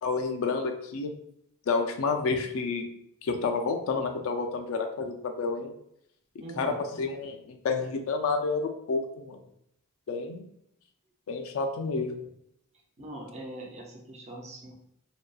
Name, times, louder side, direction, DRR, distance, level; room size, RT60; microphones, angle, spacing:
voice 1, 0.0-1.1 1.7-2.9 3.2-5.7 6.6-9.4 10.1-10.4 11.3-12.3, left 4 dB, 65° left, 5 dB, 0.3 m, -30 dB
voice 2, 6.4-6.8 13.0-14.7, right 1 dB, 30° right, 0 dB, 0.5 m, -42 dB
2.6 x 2.2 x 2.3 m, 0.74 s
head